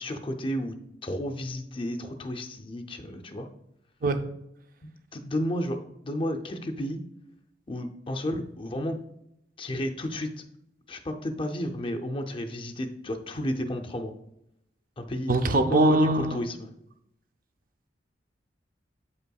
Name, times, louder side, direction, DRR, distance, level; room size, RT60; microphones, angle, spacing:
voice 1, 0.0-3.5 4.8-7.0 7.7-9.0 9.6-10.3 10.9-14.1 15.0-15.3 15.6-16.7, left 1 dB, 30° left, 4 dB, 0.5 m, -32 dB
voice 2, 15.3-16.4, right 2 dB, 50° right, 8 dB, 0.5 m, -22 dB
8.1 x 5.4 x 2.3 m, 0.80 s
head